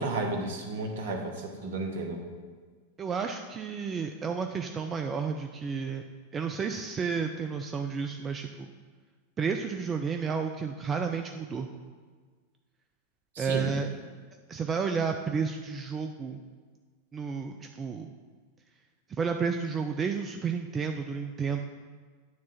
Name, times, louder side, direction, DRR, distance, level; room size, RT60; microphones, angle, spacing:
voice 1, 0.0-2.2 13.4-13.7, right 2 dB, 55° right, 3 dB, 1.1 m, -32 dB
voice 2, 3.0-6.0 6.3-8.7 9.4-11.7 13.4-13.9 14.5-16.4 17.1-18.1 19.1-21.6, right 5 dB, 20° right, 5 dB, 0.4 m, -31 dB
9.4 x 3.6 x 5.8 m, 1.5 s
figure-of-eight pair, 90°, 0 cm